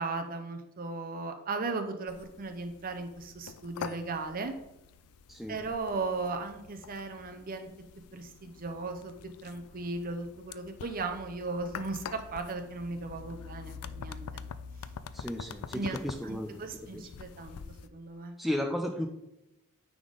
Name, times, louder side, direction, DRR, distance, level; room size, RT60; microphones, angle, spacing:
voice 1, 0.0-4.5 5.5-7.7 8.1-9.1 9.4-14.2 15.7-17.6 17.9-18.3, right 3 dB, 40° right, 6 dB, 0.7 m, -36 dB
sound 1, 2.1-17.9, left 6 dB, 75° left, 0.4 m, -46 dB
voice 2, 15.1-16.6 16.9-17.0 18.4-19.1, equal, ahead, 2 dB, 0.4 m, -34 dB
9.6 x 3.6 x 3.9 m, 0.89 s
head